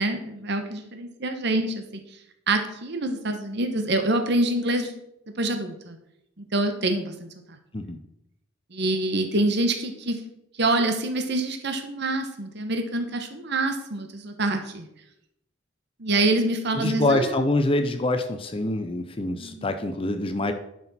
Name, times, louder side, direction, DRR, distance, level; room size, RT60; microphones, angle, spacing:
voice 1, 0.0-2.0 2.5-4.9 5.4-6.0 6.4-7.1 8.7-10.2 10.6-14.8 16.0-17.2 19.4-19.6, right 2 dB, 60° right, 6 dB, 1.1 m, -26 dB
voice 2, 16.7-20.5, left 2 dB, 30° left, 8 dB, 0.6 m, -25 dB
11.0 x 6.2 x 4.2 m, 0.79 s
head